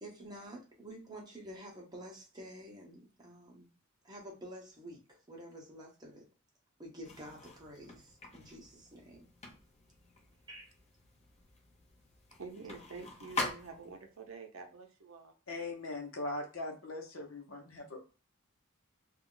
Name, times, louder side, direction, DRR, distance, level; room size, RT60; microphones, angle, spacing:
voice 1, 0.0-3.7 4.0-6.3 6.8-9.3 10.5-10.7, equal, 20° right, -2 dB, 0.8 m, -49 dB
sound 1, 7.0-14.1, left 2 dB, 30° left, 0.6 m, -44 dB
voice 2, 12.4-15.3, right 4 dB, 80° right, 4 dB, 0.6 m, -47 dB
voice 3, 15.5-18.1, left 2 dB, 75° left, 2 dB, 0.7 m, -40 dB
2.3 x 2.0 x 3.6 m, 0.37 s
head